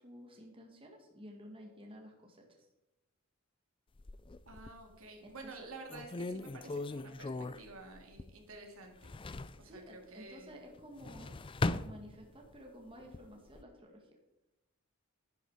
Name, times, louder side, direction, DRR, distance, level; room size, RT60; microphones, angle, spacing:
voice 1, 0.0-2.7 5.4-5.7 9.6-11.4 11.8-14.1, equal, 25° right, 1 dB, 2.1 m, -52 dB
sound 1, 4.0-4.9 5.4-5.5 5.9-8.5 8.8-9.7 10.8-12.6 13.0-13.6, left 2 dB, 25° left, 0.4 m, -39 dB
voice 2, 4.5-9.2 9.6-10.5, right 3 dB, 75° right, 3 dB, 2.6 m, -51 dB
11.5 x 10.5 x 4.9 m, 0.97 s
head